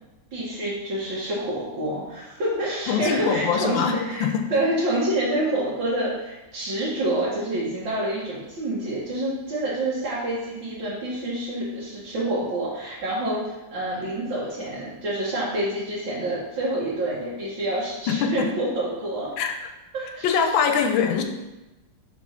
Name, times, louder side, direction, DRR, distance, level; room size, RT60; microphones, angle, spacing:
voice 1, 0.3-19.3 19.9-20.3, right 1 dB, 75° right, -8 dB, 2.1 m, -27 dB
voice 2, 2.9-4.6 18.1-18.5 19.4-19.7 20.2-21.2, left 6 dB, 85° left, 6 dB, 1.4 m, -23 dB
4.4 x 4.2 x 5.7 m, 1.0 s
omnidirectional pair, 2.1 m